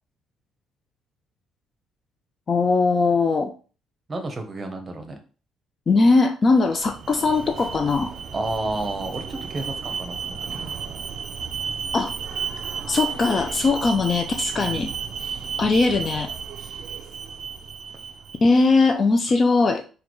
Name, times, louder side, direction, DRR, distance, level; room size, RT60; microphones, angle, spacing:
voice 1, 2.5-3.5 5.9-8.1 11.9-12.2 12.9-14.9 15.6-16.3 18.4-19.8, left 3 dB, 35° left, 5 dB, 0.3 m, -20 dB
voice 2, 4.1-5.1 8.3-10.6 13.9-14.0 14.5-14.9, right 2 dB, 25° right, 4 dB, 0.7 m, -31 dB
Alarm, 6.6-18.7, right 6 dB, 50° right, 0.4 m, -33 dB
3.8 x 2.2 x 3.0 m, 0.37 s
cardioid pair, 135°, 0 cm